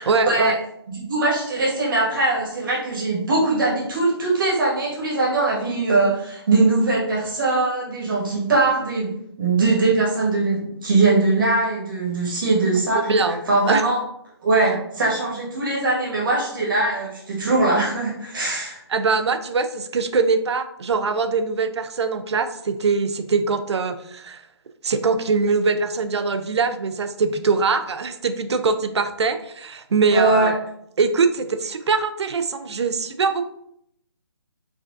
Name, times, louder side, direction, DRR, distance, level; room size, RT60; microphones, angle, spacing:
voice 1, 0.0-0.5 12.9-13.4 13.7-13.8 18.9-24.4 24.8-30.5 31.0-33.4, right 4 dB, 75° right, 9 dB, 0.5 m, -22 dB
voice 2, 0.9-9.1 9.4-13.0 13.5-14.0 14.4-18.8 30.1-30.5, right 3 dB, 50° right, -5 dB, 1.5 m, -21 dB
4.8 x 2.4 x 2.5 m, 0.74 s
hypercardioid pair, 175°, 14 cm